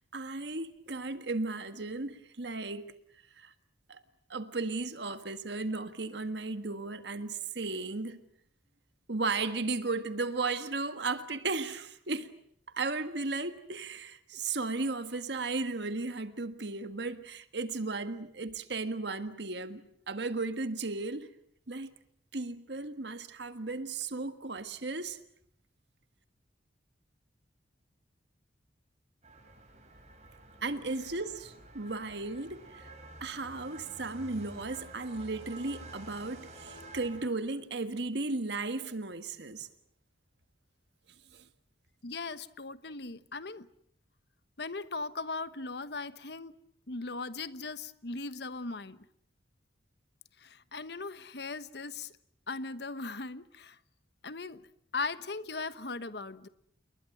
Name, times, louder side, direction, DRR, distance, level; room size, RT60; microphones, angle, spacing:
voice 1, 0.1-2.9 3.4-3.5 3.9-4.0 4.3-8.2 9.1-12.3 12.7-21.3 21.7-21.9 22.3-25.2 30.6-32.9 33.2-39.7 41.3-41.4, right 3 dB, 65° right, 1.6 m, -35 dB
sound 1, 29.2-37.2, right 2 dB, 35° right, 6.0 m, -50 dB
voice 2, 42.0-43.7 44.6-46.5 46.9-49.1 50.4-52.1 52.5-53.8 54.2-54.7 54.9-56.5, left 3 dB, 60° left, 1.2 m, -38 dB
29.5 x 21.5 x 7.8 m
head